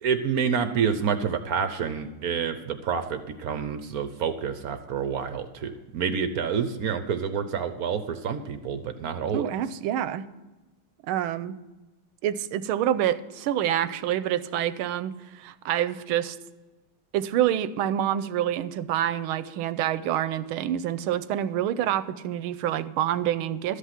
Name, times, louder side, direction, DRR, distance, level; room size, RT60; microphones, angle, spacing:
voice 1, 0.0-9.5, right 7 dB, 65° right, 10 dB, 0.9 m, -28 dB
voice 2, 9.3-10.3 11.1-11.6 12.2-16.4 17.1-23.8, right 11 dB, 85° right, 14 dB, 1.5 m, -27 dB
13.0 x 8.3 x 5.8 m, 1.1 s
omnidirectional pair, 2.3 m